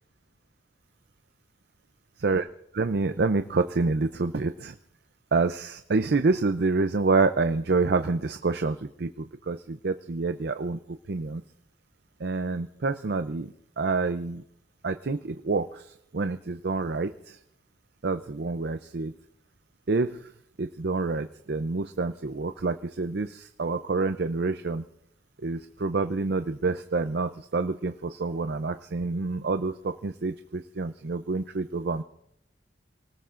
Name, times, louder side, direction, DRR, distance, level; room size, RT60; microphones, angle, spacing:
voice 1, 2.7-4.8 5.3-10.8 11.1-11.4 12.2-14.4 14.8-17.4 18.0-19.1 19.9-20.3 20.6-24.8 25.4-32.0, right 3 dB, 60° right, 9 dB, 0.6 m, -27 dB
28.0 x 19.0 x 2.6 m, 0.76 s
head